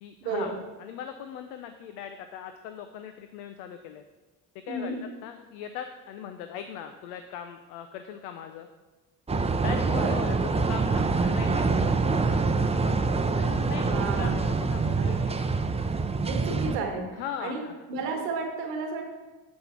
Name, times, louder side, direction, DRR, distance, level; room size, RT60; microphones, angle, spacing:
voice 1, 0.0-4.0 4.6-4.9 5.2-8.7 9.3-15.5 17.2-17.7, left 8 dB, 85° left, 8 dB, 0.6 m, -40 dB
sound 1, 9.3-16.8, right 4 dB, 15° right, 0.5 m, -25 dB
voice 2, 13.9-14.6 15.0-15.2 16.3-17.0 17.4-17.6 17.9-19.1, right 4 dB, 90° right, 2 dB, 1.3 m, -32 dB
7.5 x 4.3 x 5.5 m, 1.2 s
hypercardioid pair, 55°, 46 cm